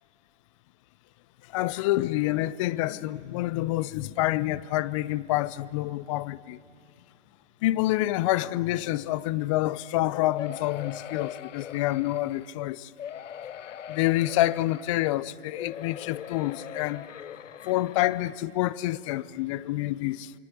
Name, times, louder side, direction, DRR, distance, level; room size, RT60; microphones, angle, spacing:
voice 1, 1.5-6.6 7.6-12.9 13.9-17.1 17.6-20.3, left 16 dB, 25° left, 0.5 m, -27 dB
sound 1, 10.3-12.5 13.0-15.1 15.5-18.4 19.0-19.1 19.3-19.4, left 9 dB, 90° left, 0.6 m, -41 dB
28.0 x 23.5 x 8.4 m
hypercardioid pair, 125°, 36 cm